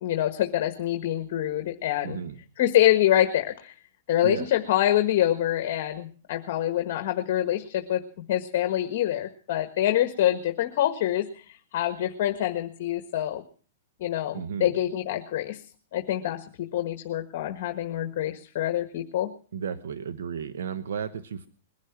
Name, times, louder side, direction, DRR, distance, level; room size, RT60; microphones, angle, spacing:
voice 1, 0.0-2.2 2.6-3.7 4.1-8.0 8.3-13.4 14.0-15.6 15.9-19.3, left 12 dB, 55° left, 6 dB, 1.5 m, -26 dB
voice 2, 2.0-2.4 4.2-4.5 14.3-14.7 19.5-21.5, right 7 dB, 85° right, 11 dB, 1.1 m, -33 dB
21.0 x 11.5 x 5.8 m, 0.42 s
hypercardioid pair, 150°, 0 cm